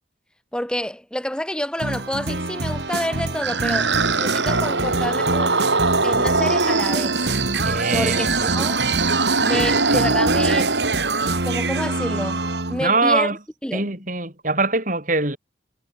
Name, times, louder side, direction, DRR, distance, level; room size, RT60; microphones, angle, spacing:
voice 1, 0.5-3.9 4.2-5.6 6.0-7.3 7.9-8.8 9.4-10.8 11.4-13.4 13.6-14.0, equal, 5° left, 2.5 m, -28 dB
sound 1, 1.8-12.9, right 3 dB, 65° right, 2.4 m, -25 dB
sound 2, 2.9-11.4, right 3 dB, 85° right, 7.0 m, -22 dB
voice 2, 7.6-8.6 9.5-10.0 12.8-13.4 13.7-15.4, right 3 dB, 45° right, 7.2 m, -23 dB
head